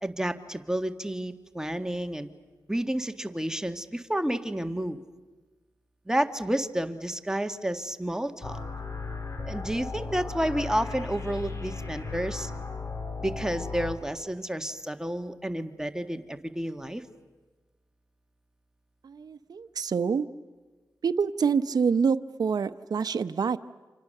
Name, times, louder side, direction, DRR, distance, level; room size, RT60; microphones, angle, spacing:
voice 1, 0.0-2.3 2.7-5.0 6.1-8.6 9.5-12.5 13.2-17.0, right 1 dB, 10° right, 7 dB, 1.7 m, -30 dB
sound 1, 8.4-14.0, left 4 dB, 45° left, 3.4 m, -36 dB
voice 2, 19.0-20.2 21.0-23.6, right 6 dB, 65° right, 9 dB, 0.8 m, -26 dB
29.0 x 27.0 x 6.7 m, 1.3 s
cardioid pair, 50°, 7 cm